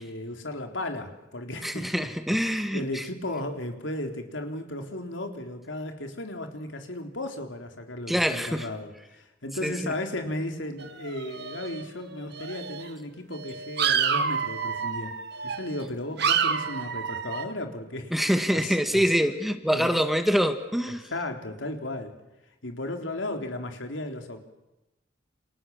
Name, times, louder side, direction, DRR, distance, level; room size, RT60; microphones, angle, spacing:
voice 1, 0.0-15.2 15.4-19.1 19.7-19.9 21.1-22.1 22.6-24.4, left 1 dB, 85° left, 5 dB, 3.8 m, -35 dB
voice 2, 1.6-3.0 8.1-8.7 9.6-9.9 18.1-21.0, equal, ahead, 7 dB, 1.8 m, -25 dB
sound 1, 10.8-12.0 12.3-12.9 13.4-15.9 16.2-17.5, right 7 dB, 60° right, 1.7 m, -29 dB
29.5 x 28.0 x 7.3 m, 1.0 s
head